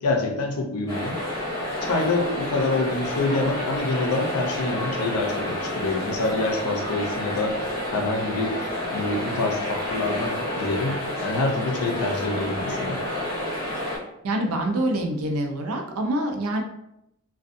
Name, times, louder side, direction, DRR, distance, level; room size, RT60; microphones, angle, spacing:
voice 1, 0.0-1.2 1.8-8.6 8.9-13.0, left 2 dB, 85° left, 3 dB, 0.5 m, -26 dB
sound 1, 0.9-14.0, left 1 dB, 15° left, 1.2 m, -29 dB
voice 2, 14.2-16.6, right 1 dB, 80° right, 3 dB, 0.5 m, -25 dB
2.5 x 2.2 x 2.5 m, 0.82 s
head